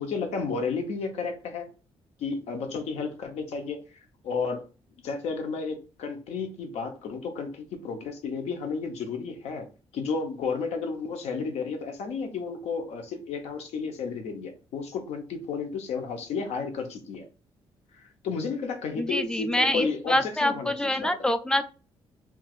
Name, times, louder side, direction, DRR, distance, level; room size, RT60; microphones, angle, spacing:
voice 1, 0.0-1.7 2.2-4.6 5.0-9.7 9.9-17.2 17.9-21.1, left 5 dB, 85° left, 0.8 m, -32 dB
voice 2, 19.0-21.6, left 1 dB, 5° left, 0.3 m, -26 dB
4.4 x 2.3 x 2.4 m
cardioid pair, 115°, 11 cm